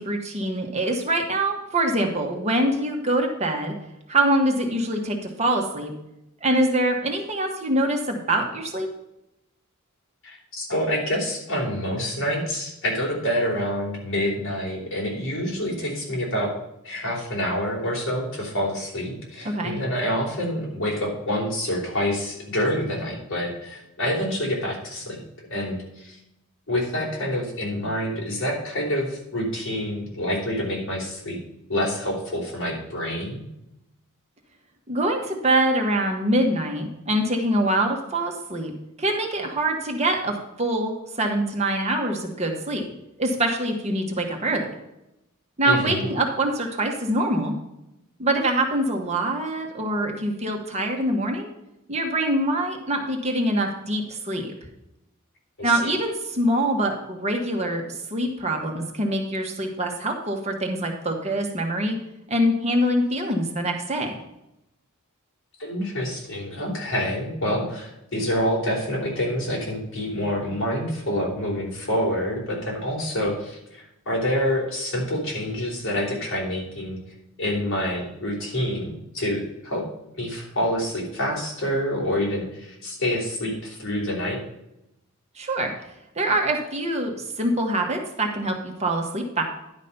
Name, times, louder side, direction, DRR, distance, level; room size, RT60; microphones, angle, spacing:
voice 1, 0.0-3.7 4.1-5.9 6.4-8.9 19.4-19.8 34.9-38.7 39.0-42.9 43.2-44.7 45.6-47.5 48.2-51.5 51.9-54.5 55.6-62.0 62.3-64.1 85.4-85.7 86.1-89.4, right 1 dB, 30° right, 2 dB, 1.4 m, -24 dB
voice 2, 10.2-16.5 16.8-25.2 25.5-26.2 26.7-31.4 31.7-33.4 45.6-46.1 55.6-56.0 65.6-77.0 77.4-79.8 80.2-84.4, equal, 60° left, -3 dB, 4.0 m, -27 dB
11.0 x 5.3 x 5.5 m, 0.87 s
head